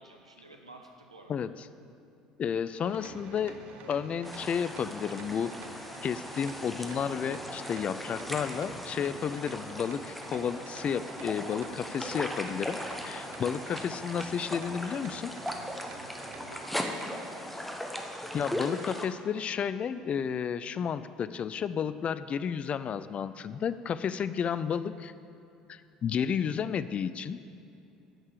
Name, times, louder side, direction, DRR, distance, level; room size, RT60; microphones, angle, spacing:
voice 1, 0.0-1.3 16.5-17.7, right 2 dB, 90° right, 3 dB, 0.9 m, -51 dB
voice 2, 2.4-3.5 3.9-5.5 6.0-15.3 18.3-25.1 25.7-27.4, left 7 dB, 40° left, 14 dB, 0.4 m, -32 dB
sound 1, 2.8-16.5, right 5 dB, 55° right, 0.9 m, -48 dB
sound 2, 4.2-19.1, equal, 5° left, 1.1 m, -39 dB
8.8 x 6.6 x 8.2 m, 2.6 s
figure-of-eight pair, 60°, 3 cm